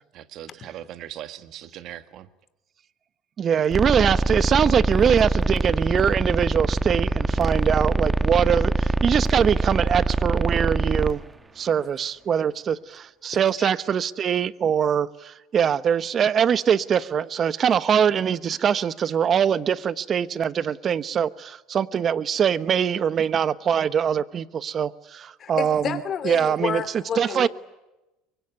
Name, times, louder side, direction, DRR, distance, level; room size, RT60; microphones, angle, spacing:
voice 1, 0.1-2.3, right 12 dB, 60° right, 11 dB, 1.6 m, -39 dB
voice 2, 3.4-11.2 11.6-26.0 26.2-26.8 27.2-27.5, right 8 dB, 40° right, 15 dB, 1.1 m, -23 dB
sound 1, 3.7-11.1, right 2 dB, 15° right, 1.3 m, -23 dB
voice 3, 25.4-27.5, left 7 dB, 40° left, 12 dB, 2.9 m, -30 dB
24.5 x 23.0 x 9.7 m, 1.0 s
supercardioid pair, 90°, 0 cm